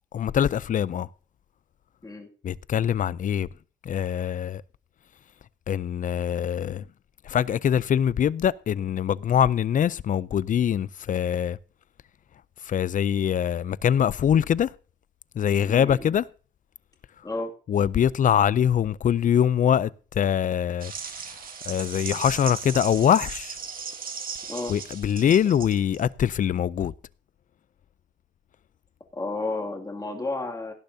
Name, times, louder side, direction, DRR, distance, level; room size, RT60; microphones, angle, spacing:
voice 1, 0.1-1.1 2.4-3.5 3.8-4.6 5.7-6.9 7.2-11.6 12.6-14.7 15.4-16.3 17.7-20.9 21.7-23.6 24.7-26.9, left 9 dB, 45° left, 0.4 m, -23 dB
voice 2, 15.6-16.1 17.2-17.5 24.5-24.7 29.1-30.7, left 2 dB, 20° left, 2.3 m, -32 dB
sound 1, 20.8-26.0, right 6 dB, 50° right, 1.9 m, -37 dB
17.5 x 10.5 x 2.7 m
wide cardioid pair, 145°, 19 cm